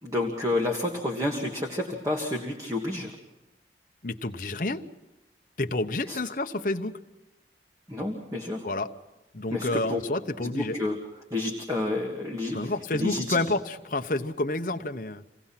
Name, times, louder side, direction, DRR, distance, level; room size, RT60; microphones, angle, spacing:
voice 1, 0.0-3.2 6.1-6.2 7.9-8.7 9.5-10.0 10.4-11.0 11.3-13.4, left 2 dB, 20° right, 1 dB, 1.8 m, -30 dB
voice 2, 4.0-4.8 5.6-7.0 8.6-8.9 9.3-10.8 12.5-15.2, left 2 dB, 45° left, 6 dB, 1.0 m, -29 dB
27.0 x 17.5 x 5.9 m, 1.0 s
head